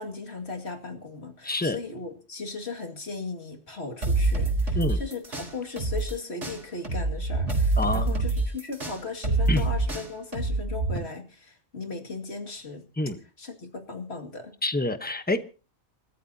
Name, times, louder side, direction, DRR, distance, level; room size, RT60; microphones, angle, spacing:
voice 1, 0.0-12.9 13.4-14.5, left 3 dB, 60° left, 2.6 m, -37 dB
voice 2, 1.4-1.8 4.7-5.0 7.8-8.2 9.5-9.6 13.0-13.2 14.6-15.4, left 2 dB, 10° left, 1.0 m, -27 dB
sound 1, 4.0-6.1 6.4-11.0, right 3 dB, 75° right, 4.4 m, -26 dB
29.0 x 14.0 x 2.8 m
omnidirectional pair, 1.2 m